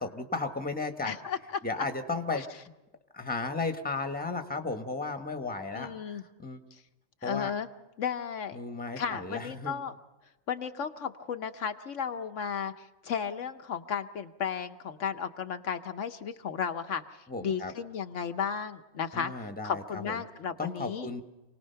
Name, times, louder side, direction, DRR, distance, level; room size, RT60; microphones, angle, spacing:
voice 1, 0.0-1.1 1.6-2.4 3.1-6.6 7.2-7.5 8.5-9.8 17.3-17.7 19.1-20.2 20.6-21.2, left 3 dB, 5° left, 7 dB, 1.2 m, -34 dB
voice 2, 1.0-1.4 2.3-2.5 5.7-6.2 6.7-6.8 7.2-7.7 8.0-8.6 9.0-9.9 10.5-17.0 17.4-19.3 19.6-21.1, left 7 dB, 70° left, 7 dB, 1.2 m, -34 dB
27.5 x 18.5 x 5.7 m, 1.0 s
omnidirectional pair, 1.3 m